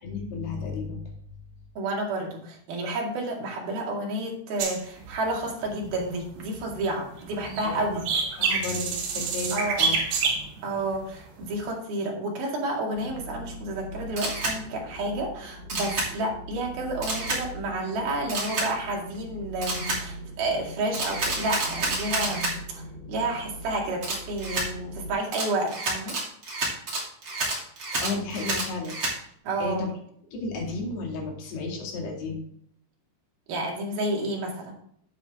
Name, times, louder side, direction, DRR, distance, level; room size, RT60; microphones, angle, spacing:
voice 1, 0.0-1.0 7.6-7.9 8.4-10.0 27.9-29.0 29.6-29.9 30.3-32.4, left 3 dB, 70° left, 0 dB, 4.2 m, -33 dB
voice 2, 1.8-8.1 9.5-9.8 10.6-22.8 23.1-26.2 29.5-29.9 33.5-34.7, right 2 dB, 65° right, -1 dB, 3.9 m, -30 dB
sound 1, 4.6-6.8 7.2-10.8 11.4-11.6, right 4 dB, 85° right, 4.9 m, -28 dB
sound 2, 12.9-25.1, right 1 dB, 20° left, 2.7 m, -41 dB
Camera, 14.2-14.6 15.7-16.1 17.0-17.4 18.3-18.7 19.6-20.0 20.9-22.5 24.0-24.7 25.3-29.1, right 2 dB, 30° right, 2.6 m, -29 dB
9.8 x 8.6 x 3.5 m, 0.67 s
omnidirectional pair, 4.9 m